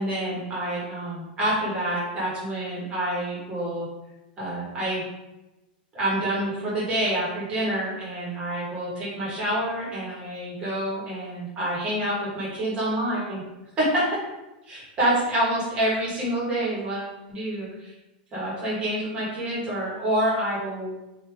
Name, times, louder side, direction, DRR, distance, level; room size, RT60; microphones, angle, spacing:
voice 1, 0.0-3.9 4.4-5.0 5.9-13.4 13.8-14.2 14.7-17.9 18.3-20.9, right 1 dB, 20° right, -7 dB, 1.3 m, -27 dB
3.4 x 2.7 x 3.4 m, 0.99 s
supercardioid pair, 160°, 5 cm